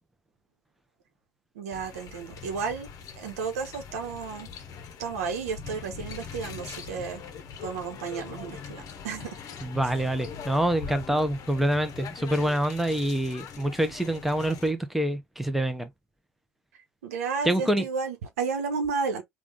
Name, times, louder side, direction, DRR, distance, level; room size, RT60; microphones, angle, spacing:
voice 1, 1.6-2.9 3.2-4.5 5.0-7.2 7.6-9.4 17.0-19.2, right 5 dB, 75° right, 1.0 m, -32 dB
sound 1, 1.7-14.7, left 6 dB, 45° left, 0.9 m, -42 dB
voice 2, 9.6-15.9 17.4-17.8, right 1 dB, ahead, 0.8 m, -26 dB
3.6 x 2.4 x 3.5 m
figure-of-eight pair, 65°, 8 cm